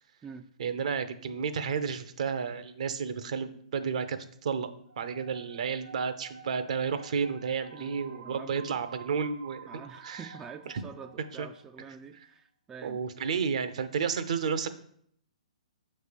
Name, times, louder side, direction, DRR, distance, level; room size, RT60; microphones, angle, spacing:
voice 1, 0.6-4.7 5.0-9.7 10.0-10.3 10.7-10.8 11.4-11.5 12.8-14.7, right 6 dB, 60° right, 10 dB, 0.7 m, -31 dB
sound 1, 4.9-11.7, right 6 dB, 80° right, 1.3 m, -51 dB
voice 2, 7.7-8.7 9.7-13.0, right 6 dB, 15° right, 6 dB, 0.3 m, -46 dB
6.3 x 3.2 x 5.2 m, 0.67 s
hypercardioid pair, 130°, 4 cm